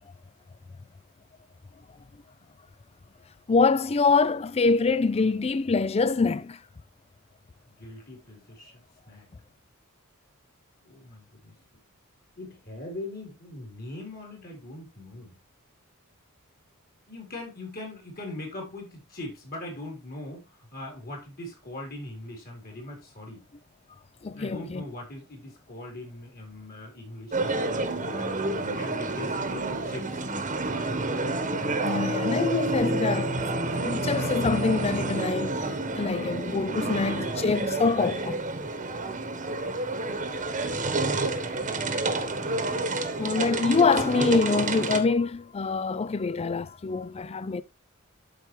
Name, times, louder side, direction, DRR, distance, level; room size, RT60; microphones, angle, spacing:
voice 1, 3.5-6.6 24.2-24.8 31.8-33.3 33.8-35.6 36.0-38.4 40.3-40.4 43.2-47.6, left 4 dB, 30° left, 0.4 m, -25 dB
voice 2, 7.8-9.3 10.8-11.6 12.4-15.4 17.1-23.4 24.2-28.3 28.7-30.3 30.7-31.0 36.2-36.4 37.9-38.1, left 2 dB, 45° left, 4.1 m, -41 dB
sound 1, 27.3-45.0, right 2 dB, 35° right, 1.2 m, -29 dB
12.0 x 4.7 x 3.2 m
head